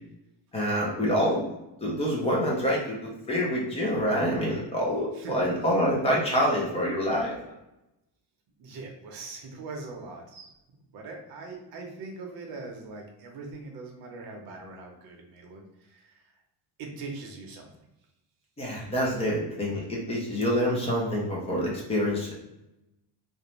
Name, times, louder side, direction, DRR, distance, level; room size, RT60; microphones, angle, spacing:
voice 1, 0.5-1.5 1.8-7.4 18.6-22.3, equal, 15° left, -4 dB, 0.4 m, -26 dB
voice 2, 5.1-6.0 8.6-10.5 10.9-16.2 16.8-17.7 19.2-19.6, right 3 dB, 55° right, 1 dB, 0.7 m, -42 dB
2.5 x 2.1 x 2.9 m, 0.91 s
cardioid pair, 170°, 45 cm